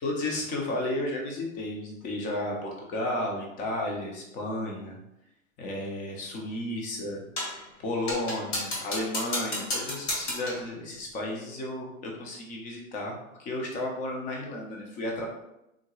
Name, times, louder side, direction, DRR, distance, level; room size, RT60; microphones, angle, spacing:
voice 1, 0.0-5.0 5.6-7.2 7.8-15.3, left 1 dB, 20° left, 0 dB, 0.6 m, -33 dB
sound 1, 7.4-7.6 8.1-10.7, left 1 dB, 35° left, 1.1 m, -32 dB
3.7 x 2.2 x 3.0 m, 0.85 s
hypercardioid pair, 135°, 40 cm